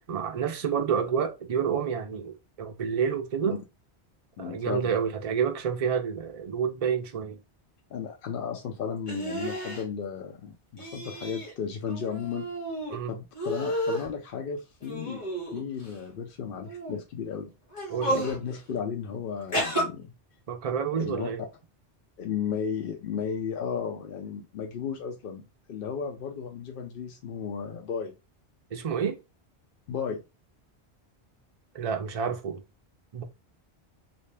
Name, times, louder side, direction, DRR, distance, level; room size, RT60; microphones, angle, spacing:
voice 1, 0.0-3.6 4.4-7.4 12.9-13.1 17.9-18.2 20.5-21.4 28.7-29.2 31.7-32.6 33.1-33.2, right 7 dB, 40° right, 0.6 m, -29 dB
voice 2, 4.4-4.9 7.9-12.5 13.1-15.2 15.5-17.5 18.1-20.1 20.9-21.3 22.2-25.4 25.7-28.1 29.9-30.2, left 7 dB, 65° left, 0.7 m, -34 dB
sound 1, 9.1-9.8 10.8-11.5 11.9-13.0 13.3-14.1 14.8-15.9 16.6-17.0 17.7-18.4 19.5-19.8, right 1 dB, 30° left, 1.6 m, -31 dB
3.2 x 2.7 x 3.3 m
omnidirectional pair, 1.1 m